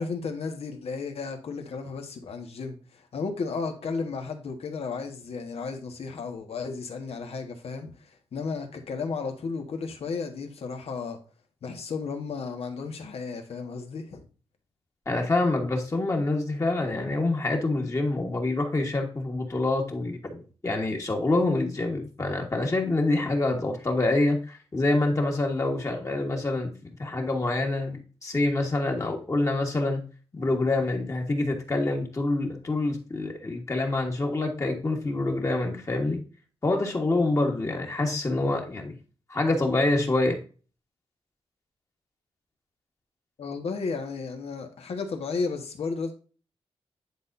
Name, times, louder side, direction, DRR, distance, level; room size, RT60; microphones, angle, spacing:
voice 1, 0.0-11.2 11.6-14.3 43.4-46.1, left 4 dB, 80° left, 1.5 m, -33 dB
voice 2, 15.0-30.1 30.3-36.2 36.6-39.0 39.3-40.4, left 2 dB, 30° left, 1.5 m, -26 dB
10.0 x 4.3 x 2.6 m
wide cardioid pair, 125°, 10 cm